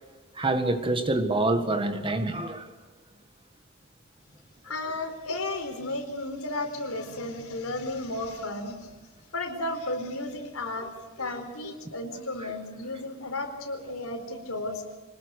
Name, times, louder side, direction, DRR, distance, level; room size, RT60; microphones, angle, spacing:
voice 1, 0.4-2.7, right 2 dB, 25° right, 7 dB, 1.9 m, -26 dB
voice 2, 4.6-8.9 9.3-10.9 11.2-14.8, left 2 dB, 85° left, 5 dB, 4.4 m, -33 dB
25.5 x 20.0 x 6.6 m, 1.3 s
head